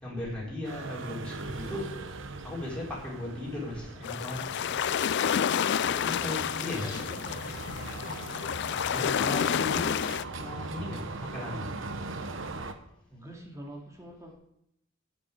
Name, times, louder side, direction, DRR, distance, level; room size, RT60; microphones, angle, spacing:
voice 1, 0.0-1.9 2.4-4.5 5.7-7.0 8.9-10.0 10.3-11.7, left 1 dB, 5° left, -6 dB, 4.6 m, -37 dB
sound 1, 0.6-12.7, right 3 dB, 70° right, 1.1 m, -40 dB
sound 2, 4.0-10.2, left 8 dB, 60° left, 0.4 m, -29 dB
voice 2, 5.9-6.2 6.8-7.5 11.3-11.7 13.1-14.3, equal, 15° right, 0 dB, 2.4 m, -46 dB
sound 3, 6.2-10.0, left 2 dB, 20° left, 2.9 m, -51 dB
8.5 x 8.3 x 8.7 m, 0.77 s
head